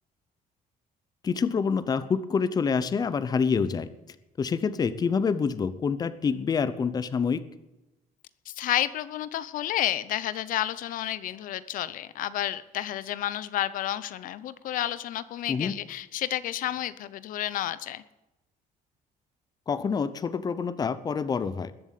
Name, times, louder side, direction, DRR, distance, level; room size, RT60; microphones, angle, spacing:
voice 1, 1.2-7.4 15.5-15.7 19.7-21.7, left 5 dB, 25° left, 14 dB, 0.8 m, -27 dB
voice 2, 8.5-18.0, left 12 dB, 65° left, 16 dB, 0.7 m, -31 dB
20.5 x 7.5 x 8.4 m, 0.97 s
cardioid pair, 150°, 15 cm